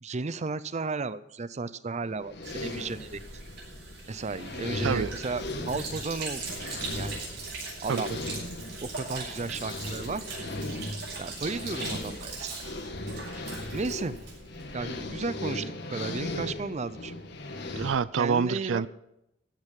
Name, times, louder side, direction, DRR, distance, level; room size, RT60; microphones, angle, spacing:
voice 1, 0.0-3.2 4.1-6.4 6.9-7.1 7.8-8.1 8.8-10.4 11.2-12.5 13.7-14.1 14.7-17.1 18.1-18.8, right 3 dB, 35° right, 15 dB, 0.6 m, -34 dB
sound 1, 2.0-18.0, left 2 dB, 60° left, 1.7 m, -38 dB
Sink (filling or washing), 2.4-14.8, right 3 dB, 60° right, 6.8 m, -40 dB
voice 2, 17.7-18.9, right 6 dB, 85° right, 18 dB, 0.4 m, -27 dB
16.0 x 6.5 x 10.0 m, 0.84 s
head